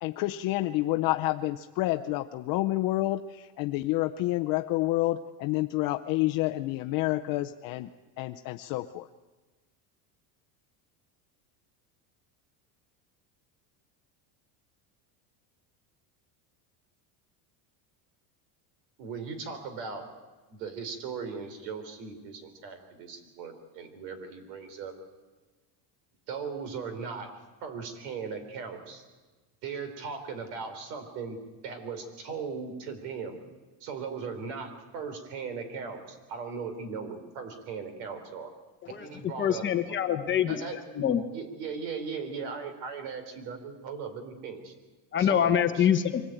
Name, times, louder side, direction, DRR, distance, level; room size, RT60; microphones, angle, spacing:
voice 1, 0.0-7.9 8.2-9.1, left 17 dB, 45° left, 6 dB, 0.6 m, -29 dB
voice 2, 19.0-20.1 20.5-24.9 26.3-27.3 27.6-29.0 29.6-31.4 31.6-33.4 33.8-38.5 38.9-39.6 40.5-40.8 41.2-44.7 45.2-45.9, right 5 dB, 90° right, 9 dB, 4.2 m, -38 dB
voice 3, 39.4-40.6 40.9-41.2 45.1-46.2, left 9 dB, 25° left, 7 dB, 1.1 m, -25 dB
24.0 x 17.0 x 9.1 m, 1.3 s
cardioid pair, 165°, 48 cm